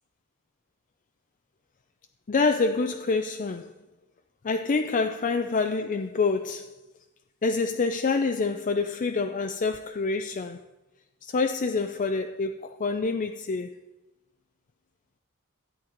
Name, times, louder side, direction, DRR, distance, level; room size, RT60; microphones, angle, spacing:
voice 1, 2.3-3.7 4.4-6.8 7.4-10.6 11.2-13.7, left 4 dB, 35° left, 0.4 m, -27 dB
12.5 x 8.7 x 5.1 m
head